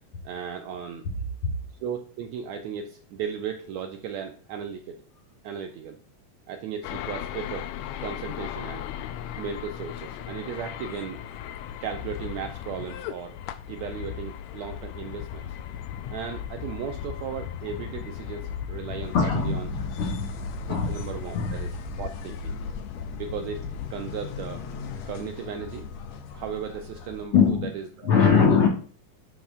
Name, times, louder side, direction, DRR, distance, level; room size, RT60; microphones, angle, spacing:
voice 1, 0.2-1.1 1.8-5.0 5.4-6.0 6.5-7.7 8.0-8.9 9.4-11.2 11.8-13.4 13.7-15.6 16.1-19.7 20.7-22.6 23.1-24.6 25.1-25.9 26.3-28.6, right 7 dB, 80° right, 5 dB, 1.6 m, -36 dB
sound 1, 6.8-25.1, left 10 dB, 90° left, 1.5 m, -37 dB
sound 2, 19.0-27.3, left 3 dB, 70° left, 1.7 m, -38 dB
voice 2, 19.1-20.9 21.3-21.6 21.9-22.0 27.3-27.7 28.0-28.7, left 6 dB, 50° left, -1 dB, 1.9 m, -22 dB
11.0 x 6.2 x 2.4 m, 0.40 s
omnidirectional pair, 3.7 m